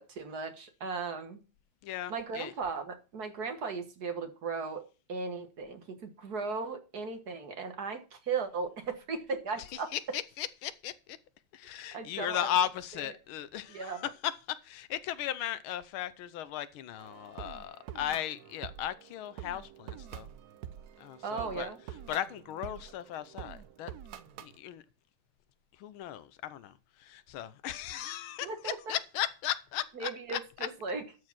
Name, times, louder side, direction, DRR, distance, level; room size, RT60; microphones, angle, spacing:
voice 1, 0.0-1.4 2.1-9.9 11.9-12.5 13.7-14.0 21.2-21.8 28.4-29.0 30.0-31.0, right 4 dB, 50° right, 1.8 m, -37 dB
voice 2, 1.8-2.5 9.7-11.2 11.5-20.3 21.0-21.7 22.1-23.9 24.4-24.8 25.8-30.4, left 11 dB, 80° left, 1.5 m, -36 dB
sound 1, 17.0-24.6, right 10 dB, 70° right, 0.9 m, -47 dB
13.0 x 4.8 x 6.0 m
omnidirectional pair, 2.3 m